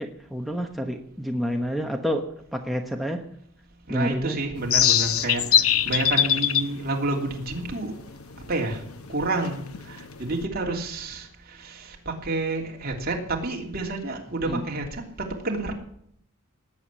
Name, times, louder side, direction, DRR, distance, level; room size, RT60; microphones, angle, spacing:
voice 1, 0.0-3.2 3.9-4.4 14.5-14.6, equal, ahead, 2 dB, 1.0 m, -29 dB
voice 2, 3.9-7.9 8.5-8.8 9.1-15.7, right 2 dB, 45° right, 1 dB, 3.1 m, -29 dB
sound 1, 4.6-10.4, left 9 dB, 85° left, 0.9 m, -24 dB
18.5 x 8.7 x 7.4 m, 0.69 s
head